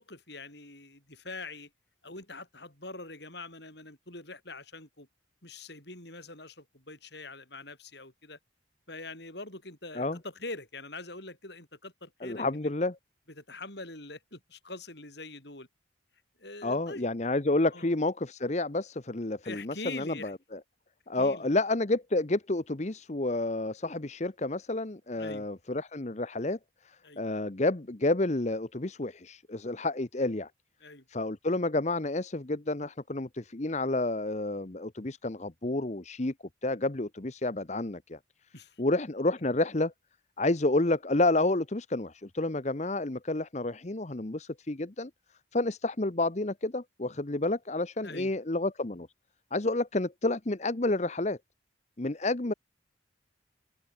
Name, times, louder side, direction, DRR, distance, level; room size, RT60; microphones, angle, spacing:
voice 1, 0.0-1.7 2.0-5.1 5.4-8.4 8.9-12.7 13.4-15.7 16.4-17.0 17.7-17.9 19.4-20.3 21.1-21.5 25.2-25.5 27.0-27.3 30.8-31.0 38.5-38.8 48.0-48.3, left 2 dB, 60° left, 7.7 m, -44 dB
voice 2, 12.2-13.0 16.6-20.6 21.1-26.6 26.8-30.5 31.1-36.3 36.6-38.2 38.8-39.9 40.4-45.1 45.5-49.1 49.5-51.4 52.0-52.5, left 2 dB, 35° left, 0.9 m, -30 dB
head